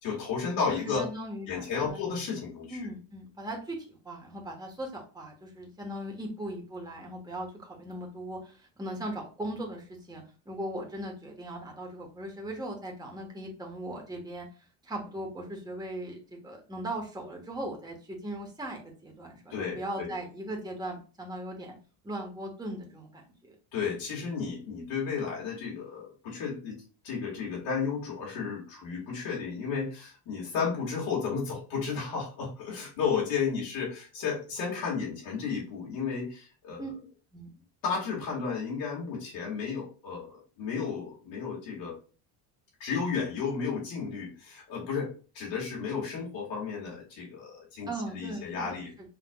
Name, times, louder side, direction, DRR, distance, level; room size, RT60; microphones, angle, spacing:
voice 1, 0.0-1.1 1.5-2.8 19.5-20.1 23.7-26.8 27.0-36.9 37.8-42.0 42.8-48.9, left 5 dB, 70° left, -4 dB, 1.9 m, -33 dB
voice 2, 0.7-2.0 2.7-21.7 22.0-23.5 36.8-36.9 37.3-37.5 47.9-48.8, right 1 dB, 10° right, 0 dB, 1.3 m, -39 dB
5.9 x 3.3 x 2.3 m, 0.36 s
cardioid pair, 120°, 45 cm